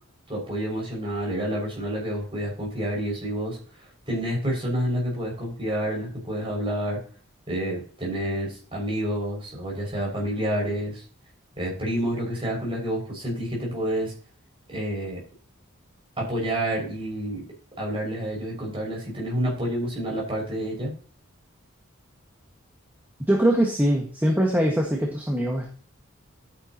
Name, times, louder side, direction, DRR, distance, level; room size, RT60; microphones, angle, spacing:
voice 1, 0.3-7.0 7.5-11.0 11.6-14.1 14.7-15.2 16.2-17.4 17.8-20.9, equal, 25° right, -2 dB, 6.1 m, -29 dB
voice 2, 23.3-25.7, right 1 dB, 10° right, -1 dB, 1.7 m, -22 dB
11.5 x 9.6 x 3.0 m, 0.41 s
head